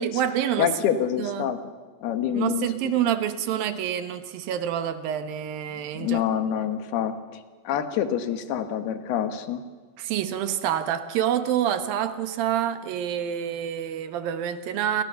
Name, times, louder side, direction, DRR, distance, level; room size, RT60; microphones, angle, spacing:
voice 1, 0.0-0.7 1.2-1.5 2.3-6.2 10.0-15.0, right 10 dB, 65° right, 10 dB, 2.5 m, -27 dB
voice 2, 0.6-1.6 2.0-3.0 5.9-9.6, left 9 dB, 65° left, 9 dB, 3.3 m, -27 dB
29.0 x 23.5 x 7.0 m, 1.5 s
omnidirectional pair, 5.2 m